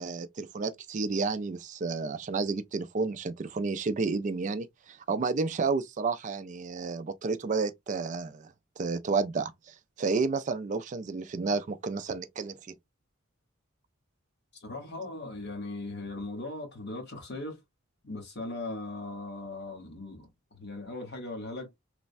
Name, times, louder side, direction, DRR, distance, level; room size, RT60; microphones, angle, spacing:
voice 1, 0.0-8.5 8.8-12.6, right 4 dB, 35° right, 0.3 m, -31 dB
voice 2, 14.5-17.6 18.0-21.8, left 2 dB, 50° left, 1.0 m, -39 dB
3.2 x 2.1 x 2.5 m
head